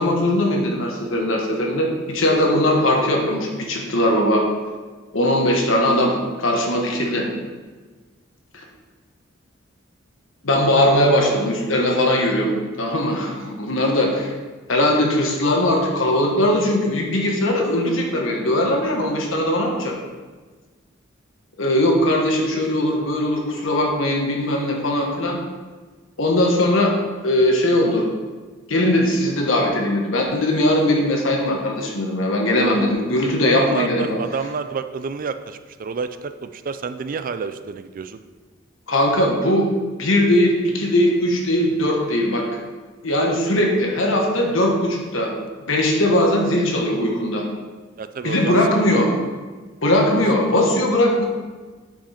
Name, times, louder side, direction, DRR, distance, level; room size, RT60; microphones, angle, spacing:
voice 1, 0.0-4.5 5.1-7.3 8.5-8.6 10.4-14.3 14.7-20.0 21.6-25.4 26.2-26.9 27.2-28.1 28.7-34.2 38.9-39.7 40.0-42.5 43.0-45.3 45.7-47.5 48.2-49.1 49.8-51.2, left 1 dB, 75° left, 1 dB, 1.4 m, -20 dB
voice 2, 33.2-38.2 48.0-48.6 48.9-49.0 50.1-50.2, right 5 dB, 45° right, 11 dB, 0.4 m, -29 dB
8.5 x 5.1 x 4.3 m, 1.4 s
head